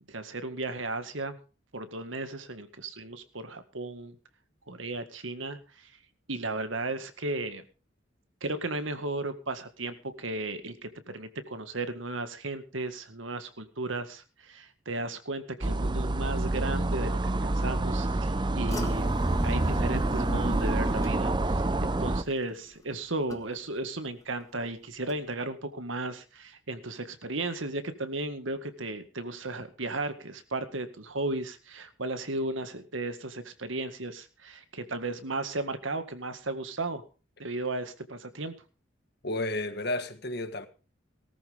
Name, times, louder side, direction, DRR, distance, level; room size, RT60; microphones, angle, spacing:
voice 1, 0.1-1.4 1.7-4.2 4.7-5.9 6.3-7.6 8.4-19.2 19.4-37.0 37.4-38.5, right 2 dB, 85° right, 1.9 m, -35 dB
sound 1, 15.6-22.2, right 2 dB, 25° right, 0.6 m, -27 dB
sound 2, 18.7-23.9 24.2-24.7 25.1-25.2, equal, 15° left, 1.7 m, -40 dB
voice 2, 39.2-40.7, left 2 dB, 55° left, 1.7 m, -32 dB
19.0 x 13.5 x 3.6 m
head